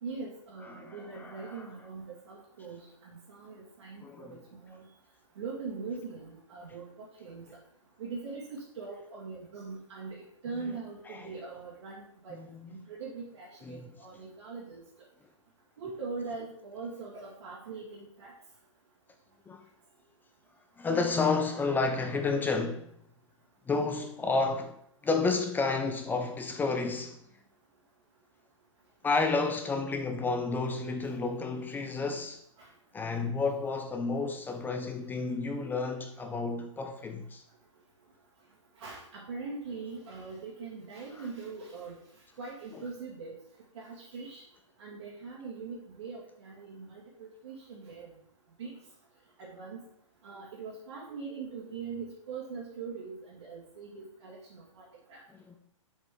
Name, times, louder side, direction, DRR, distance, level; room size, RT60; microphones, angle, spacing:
voice 1, 0.0-4.9 5.4-7.5 8.0-12.4 12.7-14.8 15.8-18.3 31.1-31.2 32.6-32.7 38.8-42.0 42.4-43.4 43.7-44.4 44.8-48.1 48.6-48.8 49.4-49.8 50.2-54.8 55.1-55.2, right 4 dB, 60° right, 1.8 m, -42 dB
voice 2, 0.7-1.6 4.0-4.3 11.2-11.3 12.3-12.5 13.7-13.8 19.5-19.6 20.8-22.9 23.7-24.8 25.0-27.2 29.0-32.4 32.9-37.4 55.5-55.6, left 3 dB, 10° left, 0.5 m, -31 dB
6.8 x 4.3 x 3.5 m
hypercardioid pair, 115°, 17 cm